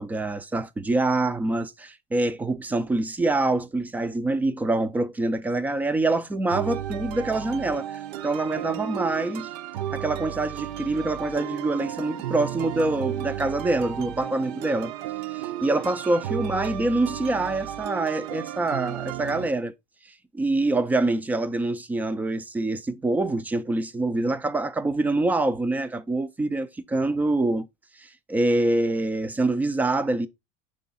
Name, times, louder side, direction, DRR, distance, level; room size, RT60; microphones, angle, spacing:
voice 1, 0.0-9.5 9.9-14.9 15.3-19.7 20.3-27.7 28.0-30.3, right 2 dB, 10° right, 0.3 m, -25 dB
sound 1, 6.5-19.5, right 12 dB, 75° right, 0.7 m, -33 dB
6.8 x 3.7 x 4.0 m
supercardioid pair, 155°, 21 cm